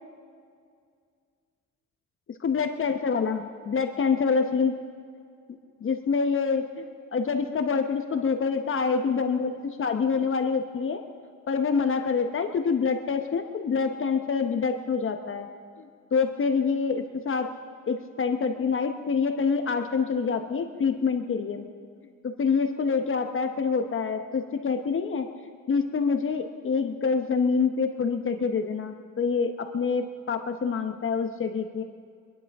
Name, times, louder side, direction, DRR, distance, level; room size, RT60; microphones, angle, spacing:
voice 1, 2.4-4.7 5.8-11.0 11.5-15.5 15.8-17.5 17.9-21.7 22.2-25.3 25.7-31.8, left 5 dB, 45° left, 6 dB, 1.0 m, -26 dB
25.0 x 10.5 x 3.6 m, 2.1 s
cardioid pair, 90°, 30 cm